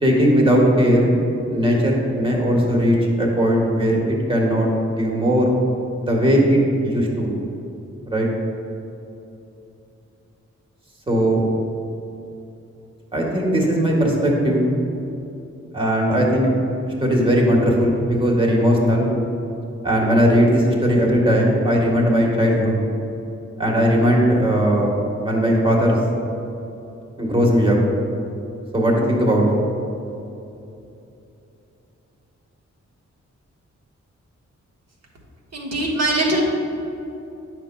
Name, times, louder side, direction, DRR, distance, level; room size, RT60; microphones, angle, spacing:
voice 1, 0.0-1.1 1.4-5.5 6.0-7.3 8.1-8.3 11.1-11.4 13.1-14.7 15.7-16.5 17.0-19.1 19.8-22.7 23.6-26.0 27.2-27.8 28.7-29.4, equal, 15° right, -2 dB, 1.5 m, -18 dB
voice 2, 35.5-36.4, right 2 dB, 55° right, -3 dB, 1.5 m, -21 dB
9.1 x 6.1 x 2.3 m, 2.8 s
cardioid pair, 55°, 30 cm